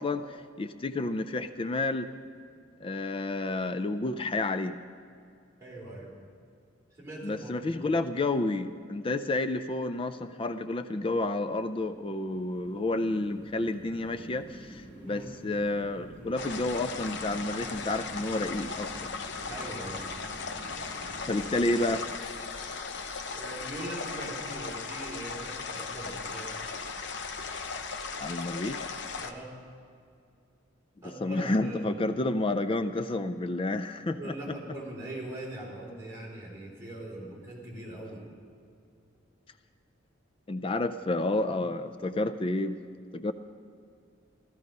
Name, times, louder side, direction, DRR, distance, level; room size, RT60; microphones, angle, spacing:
voice 1, 0.0-2.1 2.8-4.8 7.2-18.9 21.3-22.0 28.2-28.9 31.2-34.6 40.5-42.8 43.1-43.3, left 2 dB, 25° left, 11 dB, 0.4 m, -30 dB
voice 2, 5.6-6.1 6.9-7.8 14.9-15.3 19.4-20.0 23.3-26.5 29.2-29.5 31.0-31.9 34.1-38.3, right 1 dB, 15° right, -5 dB, 3.7 m, -41 dB
sound 1, 11.4-21.9, right 1 dB, 35° right, 3.6 m, -49 dB
sound 2, 16.4-29.3, left 4 dB, 60° left, 0.8 m, -37 dB
15.5 x 13.5 x 5.3 m, 2.4 s
head